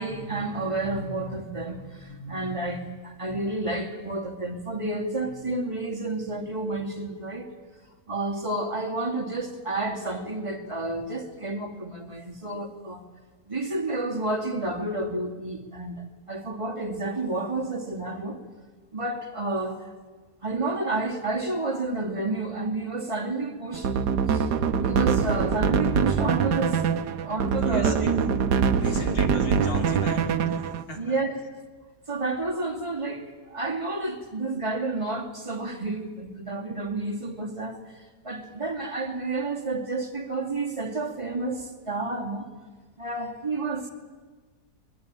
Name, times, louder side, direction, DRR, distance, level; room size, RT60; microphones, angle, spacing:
voice 1, 0.0-7.5 8.1-13.0 13.5-18.4 18.9-19.9 20.4-23.9 24.3-24.5 24.8-26.8 27.2-28.3 28.9-29.1 31.0-31.4 32.1-37.8 38.2-42.5 43.0-43.9, right 2 dB, 20° right, 1 dB, 2.5 m, -30 dB
sound 1, 23.7-30.8, right 6 dB, 85° right, 1.6 m, -24 dB
voice 2, 27.6-28.1 28.8-30.6 30.9-31.2, left 2 dB, 65° left, 2 dB, 3.6 m, -36 dB
23.5 x 21.0 x 8.9 m, 1.4 s
omnidirectional pair, 1.7 m